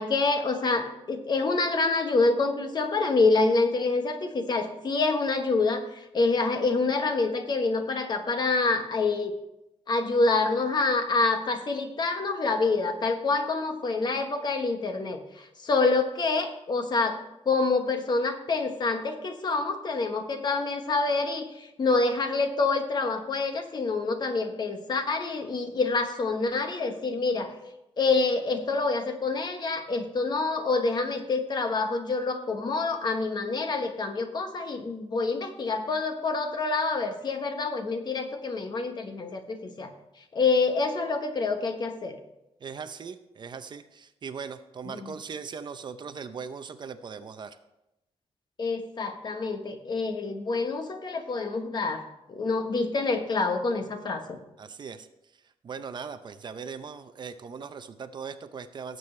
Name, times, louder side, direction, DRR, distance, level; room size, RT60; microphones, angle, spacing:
voice 1, 0.0-9.3 9.9-17.2 17.4-27.5 28.0-39.9 40.3-42.2 45.0-45.1 48.6-52.0 52.3-54.4, left 3 dB, 40° left, 6 dB, 1.2 m, -27 dB
voice 2, 42.6-47.6 54.6-55.1 55.6-59.0, right 6 dB, 45° right, 10 dB, 0.6 m, -39 dB
17.5 x 7.7 x 3.3 m, 0.89 s
wide cardioid pair, 145°, 11 cm